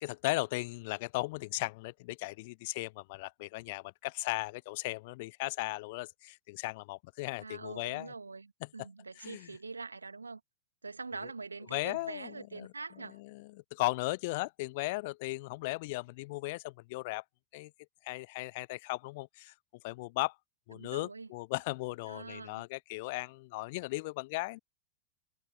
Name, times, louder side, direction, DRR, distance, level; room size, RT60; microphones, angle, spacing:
voice 1, 0.0-8.1 9.2-9.5 11.7-12.7 13.2-17.2 17.5-17.7 18.0-19.5 19.8-20.3 20.7-24.6, left 23 dB, 50° left, 0.3 m, -37 dB
voice 2, 7.4-10.4 10.8-13.2 20.7-21.3 22.1-22.6, right 4 dB, 80° right, 2.4 m, -44 dB
figure-of-eight pair, 90°, 0 cm